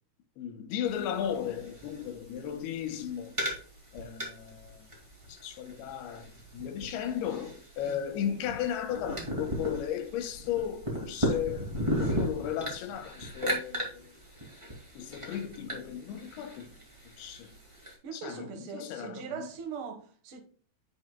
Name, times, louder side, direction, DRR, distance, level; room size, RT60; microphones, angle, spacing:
voice 1, 0.4-3.4 3.9-4.9 5.3-14.1 15.0-16.7 17.2-17.6 18.1-19.5, left 9 dB, 85° left, 2.9 m, -35 dB
sound 1, 0.8-17.9, equal, 15° right, 1.1 m, -37 dB
voice 2, 18.0-20.4, right 6 dB, 65° right, 1.3 m, -41 dB
8.3 x 7.9 x 2.2 m
omnidirectional pair, 4.6 m